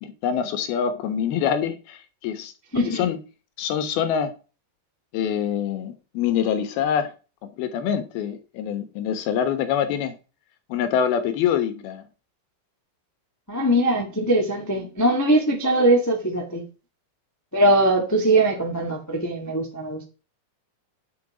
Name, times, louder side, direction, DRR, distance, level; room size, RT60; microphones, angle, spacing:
voice 1, 0.0-3.2 3.6-4.3 5.1-7.1 7.4-10.2 10.7-12.1, left 8 dB, 85° left, 3.2 m, -25 dB
voice 2, 2.7-3.1 13.5-16.6 17.5-20.0, right 1 dB, 10° left, 0.9 m, -21 dB
10.5 x 6.7 x 5.0 m
omnidirectional pair, 4.3 m